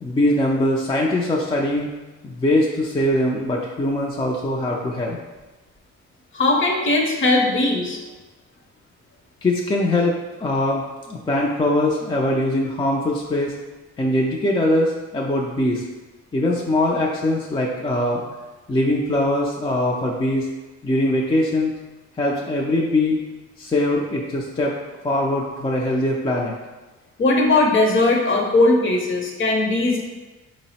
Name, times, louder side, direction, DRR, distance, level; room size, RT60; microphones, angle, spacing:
voice 1, 0.0-1.9 2.2-5.2 9.4-13.5 14.0-15.8 16.3-18.2 18.7-20.5 20.8-21.8 22.2-23.2 23.6-24.7 25.0-26.6, left 1 dB, 15° left, -2 dB, 0.4 m, -22 dB
voice 2, 6.3-8.0 27.2-30.0, left 2 dB, 40° left, 1 dB, 0.7 m, -19 dB
3.7 x 2.0 x 4.1 m, 1.2 s
cardioid pair, 90°, 30 cm